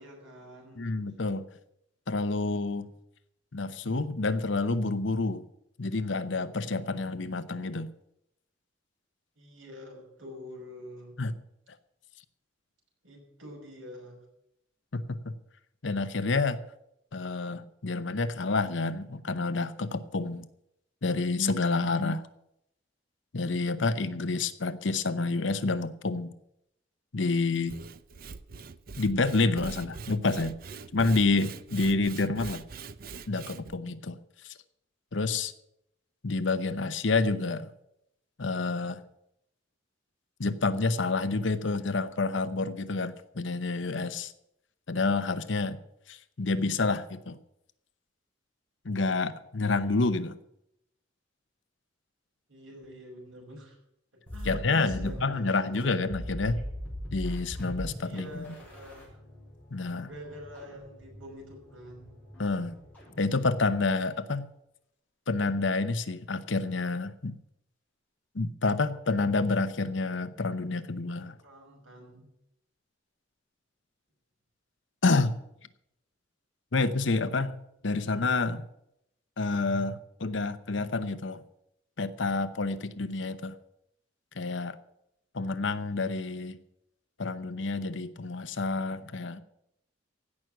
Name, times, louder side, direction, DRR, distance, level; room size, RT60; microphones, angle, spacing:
voice 1, 0.0-0.9 9.4-11.1 13.0-14.2 52.5-53.8 54.3-56.0 58.0-59.2 60.0-62.2 71.4-72.3, equal, 85° right, -1 dB, 5.9 m, -46 dB
voice 2, 0.8-1.4 2.1-2.9 3.5-5.4 5.8-7.9 11.2-11.3 14.9-15.3 15.8-16.6 17.1-20.5 21.0-22.2 23.3-26.3 27.1-27.7 29.0-30.5 30.9-32.6 33.3-34.2 35.1-35.5 36.2-37.7 38.4-39.0 40.4-44.3 44.9-45.8 46.1-47.4 48.8-50.4 54.4-56.6 57.1-58.4 59.7-60.1 62.4-62.8 63.2-64.5 65.3-67.3 68.3-71.4 75.0-75.4 76.7-77.6 77.8-78.6 79.4-81.4 82.0-83.5 84.4-84.8 85.3-86.6 87.2-89.4, left 3 dB, 65° left, 13 dB, 0.9 m, -28 dB
Sawing / Wood, 27.5-33.8, right 4 dB, 50° right, 0.5 m, -43 dB
sound 1, 54.3-64.0, equal, 10° left, 4.8 m, -41 dB
16.0 x 6.1 x 9.1 m, 0.80 s
head